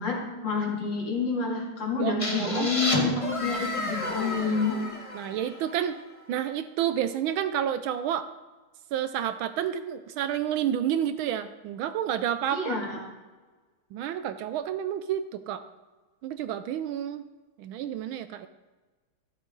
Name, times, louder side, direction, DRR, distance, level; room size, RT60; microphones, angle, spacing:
voice 1, 0.0-4.8 12.5-13.0, left 4 dB, 55° left, -2 dB, 3.1 m, -28 dB
voice 2, 2.0-3.6 5.1-6.0 6.3-8.3 8.9-12.8 13.9-15.6 16.2-17.3 17.6-18.5, right 10 dB, 75° right, 12 dB, 1.3 m, -30 dB
sound 1, 2.2-5.9, left 2 dB, 20° left, 1.0 m, -31 dB
12.5 x 12.0 x 3.8 m, 1.3 s
omnidirectional pair, 2.4 m